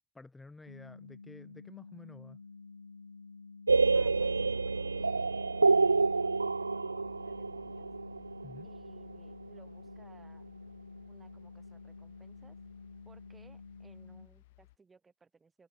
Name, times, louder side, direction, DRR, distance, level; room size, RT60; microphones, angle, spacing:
voice 1, 0.1-2.4 8.4-8.7, left 3 dB, 5° left, 2.6 m, -51 dB
sound 1, 0.7-14.3, left 4 dB, 80° left, 1.0 m, -50 dB
sound 2, 3.7-9.4, right 4 dB, 80° right, 0.3 m, -28 dB
voice 2, 3.9-7.9 8.6-10.6 11.1-12.6 13.1-15.7, right 4 dB, 10° right, 6.9 m, -62 dB
sound 3, 7.0-14.8, left 19 dB, 45° left, 6.7 m, -62 dB
figure-of-eight pair, 120°, 0 cm